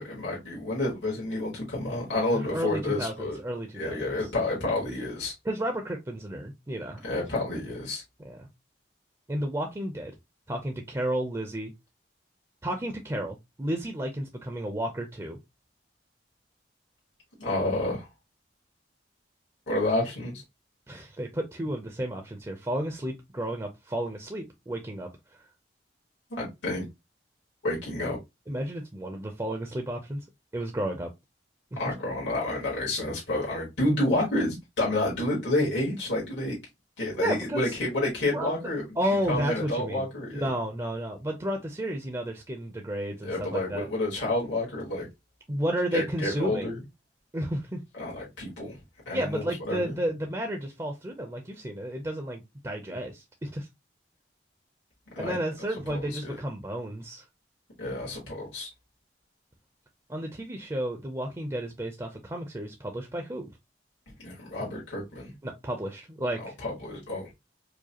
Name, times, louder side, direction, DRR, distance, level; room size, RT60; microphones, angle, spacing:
voice 1, 0.0-3.4 3.8-5.3 7.0-8.0 17.4-18.1 19.7-20.4 26.3-26.9 27.6-28.2 31.8-36.6 37.0-38.8 39.3-40.5 43.2-45.1 45.9-46.8 47.9-48.8 49.1-49.9 55.2-55.4 55.9-56.4 57.8-58.7 64.2-65.3 66.4-67.3, left 1 dB, 80° left, 1.8 m, -29 dB
voice 2, 2.3-4.3 5.4-7.0 8.2-8.5 9.3-10.1 10.5-11.7 12.6-15.4 20.9-25.1 28.5-30.2 30.5-31.1 31.7-31.9 37.2-37.8 38.3-38.5 39.0-43.9 45.5-46.7 47.3-47.8 49.1-53.7 55.2-57.2 60.1-63.5 65.4-66.5, right 1 dB, 20° right, 0.5 m, -32 dB
4.8 x 2.2 x 2.8 m
head